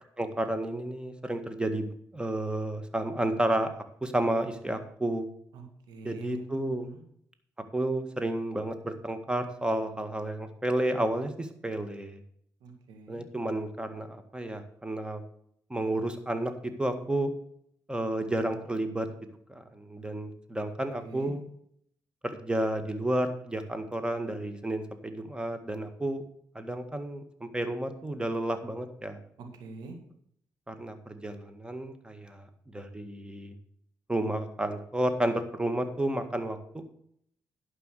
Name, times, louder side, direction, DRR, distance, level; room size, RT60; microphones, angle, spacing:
voice 1, 0.2-3.7 4.0-5.3 6.0-6.9 7.7-12.2 13.1-15.2 15.7-17.3 17.9-19.1 19.5-21.4 22.2-26.2 26.6-29.2 30.7-32.5 32.7-33.5 34.1-36.8, right 1 dB, 15° right, 8 dB, 1.8 m, -31 dB
voice 2, 5.5-7.0 12.6-13.2 21.0-21.3 29.4-30.0, right 4 dB, 80° right, 3 dB, 2.1 m, -45 dB
11.0 x 5.5 x 6.7 m, 0.69 s
supercardioid pair, 50°, 7 cm